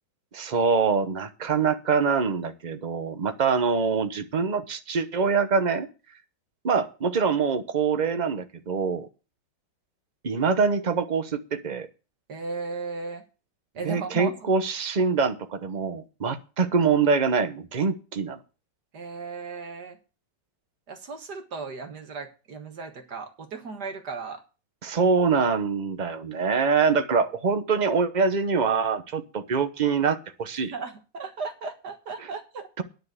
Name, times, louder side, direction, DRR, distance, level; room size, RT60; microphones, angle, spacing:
voice 1, 0.3-5.9 6.6-9.1 10.2-11.9 13.8-18.4 24.8-30.7 32.8-32.9, right 5 dB, 35° right, 9 dB, 0.7 m, -24 dB
voice 2, 12.3-13.2 13.7-14.5 18.9-20.0 20.9-24.4 30.7-32.7, right 4 dB, 55° right, 5 dB, 2.0 m, -36 dB
10.0 x 6.6 x 8.1 m, 0.33 s
omnidirectional pair, 2.1 m